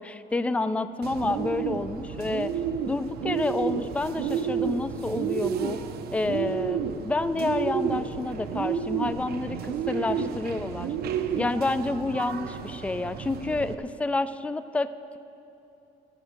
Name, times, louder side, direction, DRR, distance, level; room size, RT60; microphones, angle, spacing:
voice 1, 0.0-2.5 2.9-5.8 6.1-10.9 11.3-15.2, left 2 dB, 10° left, 13 dB, 0.4 m, -29 dB
Bird, 1.0-13.7, right 7 dB, 65° right, 0.8 m, -31 dB
13.5 x 8.8 x 6.4 m, 2.9 s
cardioid pair, 110°, 17 cm